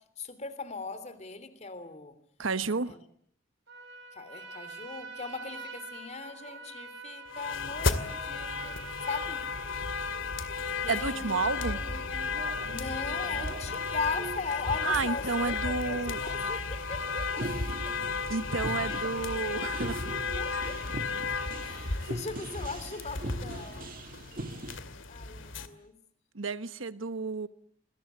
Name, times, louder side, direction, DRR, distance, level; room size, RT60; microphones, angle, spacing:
voice 1, 0.2-2.2 2.9-3.0 4.1-8.8 9.1-9.4 10.8-12.3 12.6-17.5 17.8-17.9 18.8-19.8 20.0-20.8 21.6-23.9 25.1-26.0, left 4 dB, 35° left, 3.2 m, -39 dB
voice 2, 2.4-3.0 10.9-11.8 14.8-16.2 18.3-20.1 26.3-27.5, right 4 dB, 90° right, 1.1 m, -31 dB
Trumpet, 3.7-10.1, right 3 dB, 65° right, 6.6 m, -46 dB
Car alarm, 7.3-25.7, left 4 dB, 75° left, 2.4 m, -34 dB
sound 1, 10.8-24.8, right 1 dB, 45° right, 1.7 m, -42 dB
28.5 x 22.0 x 8.1 m
head